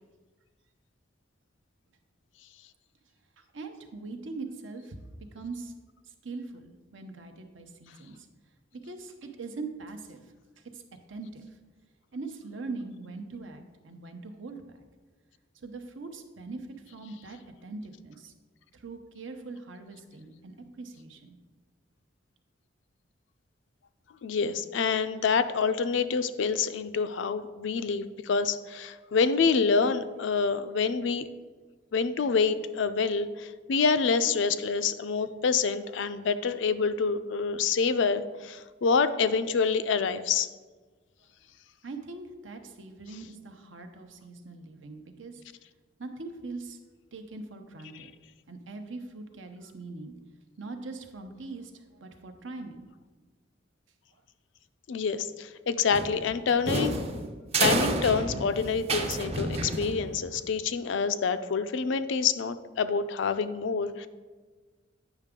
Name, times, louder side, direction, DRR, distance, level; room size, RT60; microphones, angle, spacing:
voice 1, 3.4-5.0 5.3-5.7 6.0-8.3 8.7-10.2 10.6-10.8 11.1-11.6 12.1-14.6 15.5-18.3 18.7-21.4 41.8-45.4 46.0-46.8 47.1-48.1 48.5-50.1 50.6-52.9, right 3 dB, 80° right, 6 dB, 0.8 m, -41 dB
voice 2, 24.2-31.2 31.9-40.5 54.9-57.0 57.6-64.1, left 5 dB, 75° left, 11 dB, 0.4 m, -27 dB
sound 1, 55.9-60.4, right 2 dB, 30° right, 0.6 m, -30 dB
9.0 x 5.8 x 3.7 m, 1.4 s
head